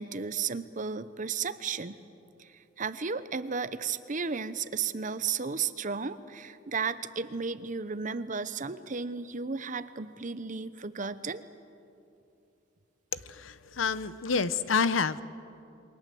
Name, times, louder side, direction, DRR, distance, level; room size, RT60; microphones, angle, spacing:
voice 1, 0.0-2.0 2.4-11.4, right 5 dB, 40° right, 13 dB, 0.8 m, -34 dB
voice 2, 13.1-15.2, left 5 dB, 80° left, 15 dB, 0.8 m, -28 dB
28.0 x 23.0 x 7.8 m, 2.7 s
head